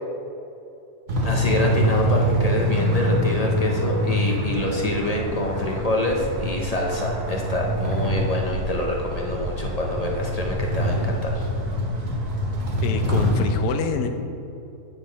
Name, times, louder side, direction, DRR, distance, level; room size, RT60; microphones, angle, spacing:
sound 1, 1.1-13.5, equal, 60° right, 1.7 m, -25 dB
voice 1, 1.2-11.5, left 1 dB, 60° left, 0 dB, 0.4 m, -26 dB
sound 2, 2.7-13.2, right 3 dB, 75° right, 1.3 m, -36 dB
voice 2, 12.8-14.1, left 5 dB, 75° left, 6 dB, 1.2 m, -26 dB
8.7 x 4.7 x 5.0 m, 2.7 s
omnidirectional pair, 1.7 m